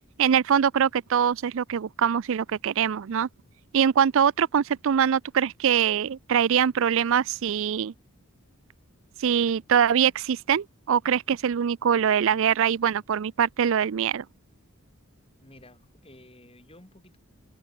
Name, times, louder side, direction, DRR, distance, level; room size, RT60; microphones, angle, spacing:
voice 1, 0.2-3.3 3.7-7.9 9.2-14.2, right 8 dB, 60° right, 0.4 m, -23 dB
voice 2, 15.4-17.2, left 1 dB, 25° left, 5.8 m, -52 dB
head